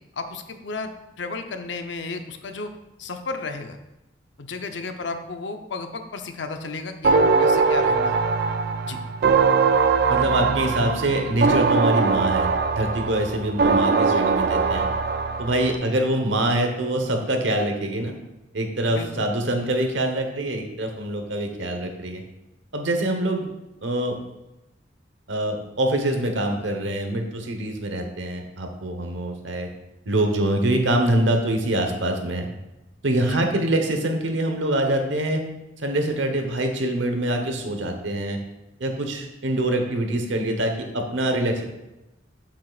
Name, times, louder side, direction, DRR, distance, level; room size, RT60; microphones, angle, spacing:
voice 1, 0.2-3.8 4.4-8.2 8.8-9.0 18.9-19.3 33.2-33.4, left 3 dB, 75° left, 7 dB, 0.7 m, -33 dB
sound 1, 7.0-15.8, right 4 dB, 55° right, 0.4 m, -21 dB
voice 2, 10.1-14.9 15.4-18.1 18.5-22.2 22.7-23.5 23.8-24.2 25.3-29.7 30.1-32.5 33.0-35.4 35.8-38.4 38.8-41.6, right 1 dB, 90° right, 4 dB, 1.1 m, -24 dB
7.6 x 7.3 x 2.4 m, 0.96 s
head